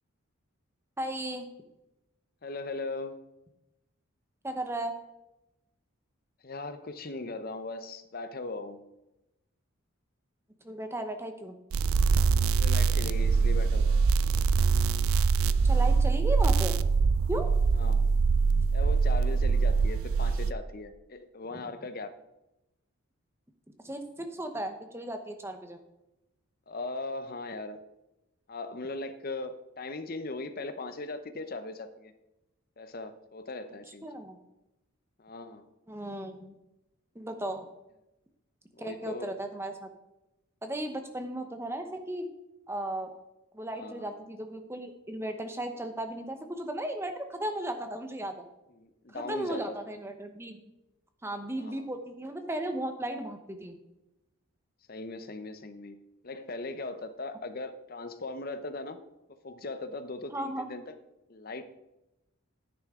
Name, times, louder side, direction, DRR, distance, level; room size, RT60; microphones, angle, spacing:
voice 1, 1.0-1.5 4.4-4.9 10.6-11.5 15.6-16.8 17.3-17.5 23.8-25.8 34.0-34.4 35.9-36.6 37.1-37.6 38.8-39.9 40.6-42.3 42.7-43.1 43.5-48.5 49.1-50.6 51.2-53.8 60.3-60.7, right 1 dB, 10° right, 6 dB, 0.9 m, -35 dB
voice 2, 2.4-3.2 6.4-8.9 12.5-14.1 17.7-18.3 18.7-22.1 26.7-27.8 28.5-32.1 32.8-34.1 35.2-35.7 38.7-39.3 43.7-44.2 48.8-49.7 51.6-51.9 54.9-56.0 56.2-59.0 59.4-61.0 61.3-61.6, left 3 dB, 45° left, 10 dB, 0.7 m, -39 dB
sound 1, 11.7-20.5, right 5 dB, 80° right, 0.4 m, -24 dB
10.5 x 9.7 x 3.7 m, 0.94 s
head